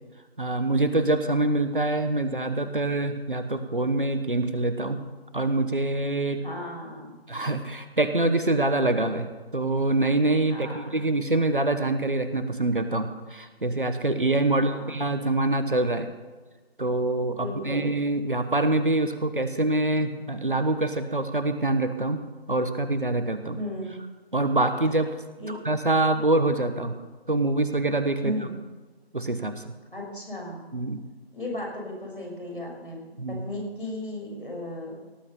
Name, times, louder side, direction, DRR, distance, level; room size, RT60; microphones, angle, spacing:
voice 1, 0.4-5.0 5.3-6.4 7.3-16.1 16.8-22.2 22.5-23.6 24.3-25.2 25.5-27.0 27.3-28.3 29.1-29.7 30.7-31.0 33.2-33.4, right 2 dB, 55° right, 9 dB, 1.3 m, -25 dB
voice 2, 6.4-7.2 10.5-11.0 14.5-14.9 17.3-17.9 23.5-23.9 25.4-25.6 28.2-28.5 29.9-30.6 31.3-35.0, left 1 dB, 55° left, -1 dB, 6.2 m, -35 dB
18.0 x 8.2 x 7.0 m, 1.3 s
figure-of-eight pair, 170°, 32 cm